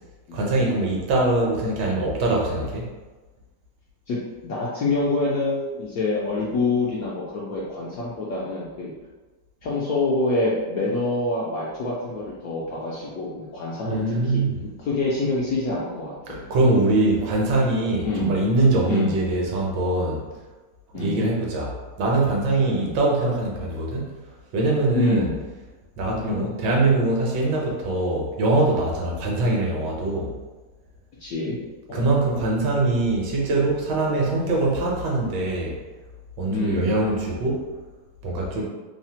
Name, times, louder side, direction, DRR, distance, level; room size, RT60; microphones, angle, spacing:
voice 1, 0.3-2.9 13.8-14.6 16.3-20.3 20.9-24.1 24.5-25.3 26.0-30.3 31.9-35.8 36.4-37.7 38.2-38.6, right 2 dB, 75° right, -2 dB, 1.3 m, -23 dB
voice 2, 4.4-8.9 9.6-16.5 18.0-18.3 18.8-19.1 20.9-21.3 22.7-23.0 24.9-25.4 26.1-26.4 31.2-31.6 31.9-32.1 36.5-36.9 38.5-38.6, left 2 dB, 75° left, -6 dB, 0.8 m, -26 dB
3.2 x 2.1 x 2.7 m, 1.2 s
omnidirectional pair, 2.0 m